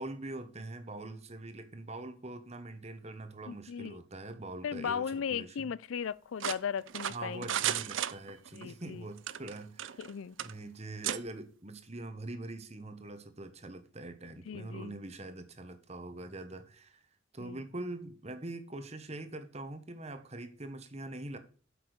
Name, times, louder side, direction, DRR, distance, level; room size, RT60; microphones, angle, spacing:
voice 1, 0.0-5.7 7.1-10.0 10.4-17.0 17.3-21.4, right 2 dB, 30° right, 1.1 m, -43 dB
voice 2, 3.5-4.0 4.6-7.6 8.5-9.1 10.0-10.4 14.5-15.0 17.4-17.6, left 7 dB, 80° left, 0.4 m, -37 dB
sound 1, 6.4-8.6 9.2-10.1 10.4-10.5 11.0-11.2, right 11 dB, 75° right, 0.5 m, -34 dB
8.0 x 5.9 x 6.5 m
head